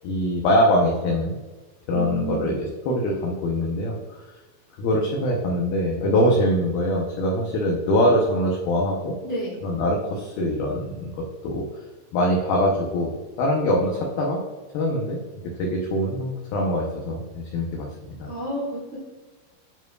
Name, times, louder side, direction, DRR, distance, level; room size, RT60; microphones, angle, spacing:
voice 1, 0.0-1.4 1.9-4.2 4.8-9.1 9.6-11.1 11.4-11.8 12.1-14.4 14.7-15.2 15.6-18.3, equal, 85° left, -1 dB, 2.1 m, -23 dB
voice 2, 1.9-2.6 9.2-9.6 18.3-19.0, right 2 dB, 75° right, -8 dB, 1.1 m, -30 dB
10.5 x 4.6 x 2.3 m, 1.3 s
omnidirectional pair, 5.5 m